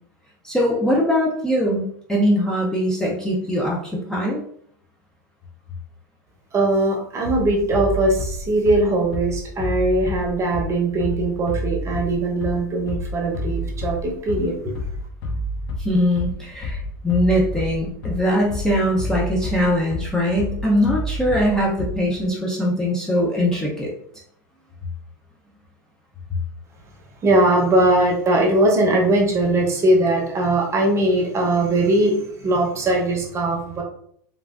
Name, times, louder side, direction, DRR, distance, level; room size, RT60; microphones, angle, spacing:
voice 1, 0.4-4.4 15.8-23.9, equal, 5° left, -4 dB, 0.5 m, -21 dB
voice 2, 6.5-14.7 27.2-33.8, right 2 dB, 25° right, 0 dB, 0.8 m, -20 dB
Bass drum, 7.2-22.2, left 1 dB, 55° left, 0.7 m, -29 dB
3.1 x 2.4 x 2.4 m, 0.66 s
hypercardioid pair, 110°, 11 cm